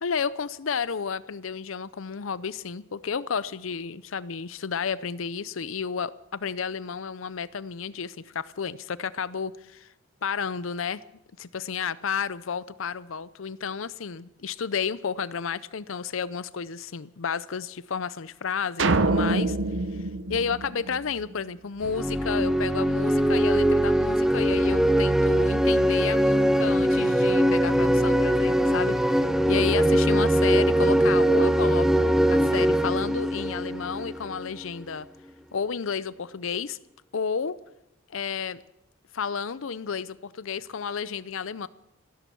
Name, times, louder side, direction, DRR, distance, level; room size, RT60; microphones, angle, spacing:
voice 1, 0.0-9.9 10.2-11.0 11.4-19.6 20.3-35.1 35.5-36.8 37.1-37.6 38.1-38.6 39.1-41.7, left 6 dB, 75° left, 17 dB, 0.6 m, -31 dB
sound 1, 18.8-21.3, right 2 dB, 65° right, 0.9 m, -26 dB
sound 2, 21.8-34.5, right 1 dB, ahead, 0.5 m, -22 dB
15.5 x 13.5 x 6.9 m, 0.87 s
head